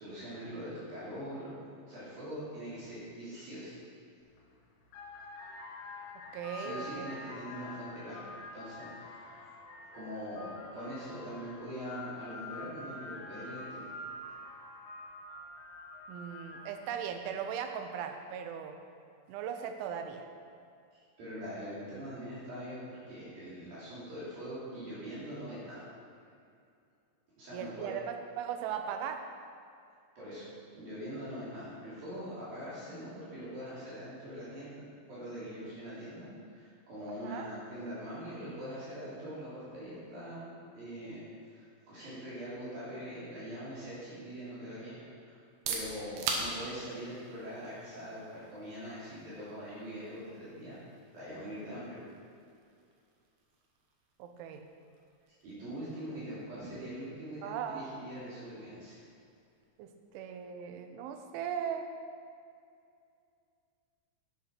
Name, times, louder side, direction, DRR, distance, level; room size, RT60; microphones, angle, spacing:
voice 1, 0.0-1.5 1.8-3.8 6.6-9.4 9.9-10.5 10.7-13.9 20.9-25.9 27.4-27.9 30.2-30.5 30.7-34.8 35.1-41.2 41.5-45.4 45.7-50.8 51.1-52.0 55.4-59.0, equal, 55° right, -10 dB, 4.6 m, -43 dB
sound 1, 4.2-4.4 4.8-16.9, left 2 dB, 80° left, 3.6 m, -46 dB
voice 2, 6.3-7.1 16.1-18.7 19.3-20.2 27.5-29.2 37.2-37.5 54.2-54.6 57.4-58.1 59.8-59.9 60.1-61.9, right 8 dB, 90° right, 6 dB, 3.2 m, -38 dB
sound 2, 45.4-61.0, right 4 dB, 70° right, 2.7 m, -45 dB
10.5 x 8.2 x 5.9 m, 2.4 s
omnidirectional pair, 5.4 m